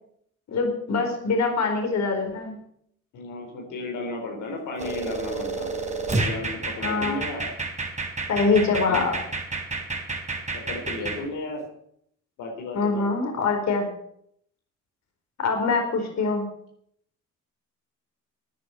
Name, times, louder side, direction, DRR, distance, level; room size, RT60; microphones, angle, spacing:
voice 1, 0.5-2.6 6.8-7.2 8.3-9.2 12.7-13.9 15.4-16.5, left 4 dB, 60° left, 3 dB, 4.6 m, -24 dB
voice 2, 3.1-5.7 6.1-7.5 8.8-9.1 10.5-11.6 12.4-13.0, left 2 dB, 90° left, 1 dB, 4.1 m, -34 dB
sound 1, 4.8-11.2, right 3 dB, 25° right, 3.4 m, -30 dB
13.5 x 9.9 x 8.3 m, 0.69 s
cardioid pair, 90°, 30 cm